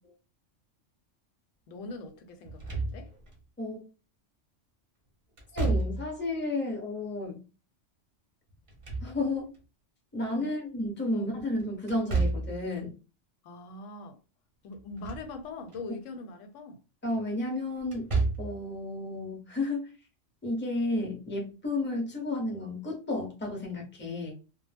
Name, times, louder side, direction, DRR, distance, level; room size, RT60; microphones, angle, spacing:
voice 1, 1.7-3.1 10.3-10.6 11.1-11.3 13.4-14.2 14.6-16.8, left 2 dB, 90° left, 0.9 m, -42 dB
Slam / Thump thud, 2.5-3.4 5.4-6.3 8.5-9.6 11.9-12.7 14.8-15.3 15.7-15.8 17.8-18.6, right 3 dB, 35° right, 0.6 m, -31 dB
voice 2, 5.5-7.4 9.0-9.5 10.1-12.9 17.0-18.1 18.4-19.9 20.4-24.3, left 2 dB, 10° left, 0.6 m, -32 dB
2.2 x 2.0 x 3.2 m
omnidirectional pair, 1.3 m